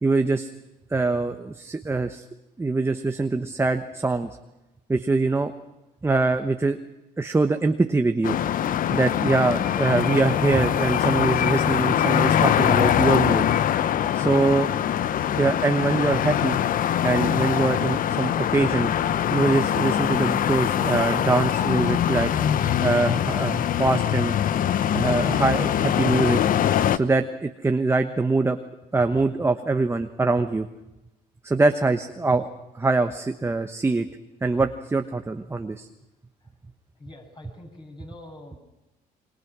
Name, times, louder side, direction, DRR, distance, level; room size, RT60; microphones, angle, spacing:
voice 1, 0.0-0.5 0.9-2.2 2.6-4.3 4.9-5.5 6.0-6.8 7.2-8.4 8.9-13.4 14.1-14.7 15.4-16.6 17.0-22.3 22.8-24.3 24.9-26.4 26.9-28.6 28.9-30.7 31.4-32.5 32.8-34.1 34.4-35.9, right 3 dB, 15° right, 7 dB, 1.1 m, -23 dB
sound 1, 8.2-27.0, left 10 dB, 55° left, 0.9 m, -23 dB
voice 2, 37.0-38.6, left 1 dB, 30° left, 3 dB, 6.8 m, -44 dB
29.0 x 22.5 x 6.2 m, 0.96 s
cardioid pair, 110°, 17 cm